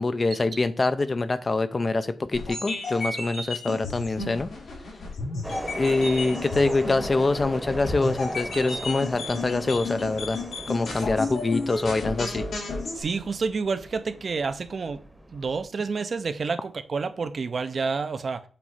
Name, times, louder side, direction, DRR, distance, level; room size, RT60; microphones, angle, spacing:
voice 1, 0.0-4.5 5.7-10.4 10.7-12.4, left 3 dB, 30° left, 0.5 m, -25 dB
sound 1, 2.3-13.0, left 2 dB, 80° left, 3.0 m, -33 dB
sound 2, 5.4-15.6, right 1 dB, 5° right, 1.0 m, -39 dB
voice 2, 12.9-15.0 15.3-18.4, right 4 dB, 50° right, 0.6 m, -29 dB
7.6 x 3.1 x 5.6 m
wide cardioid pair, 130°, 0 cm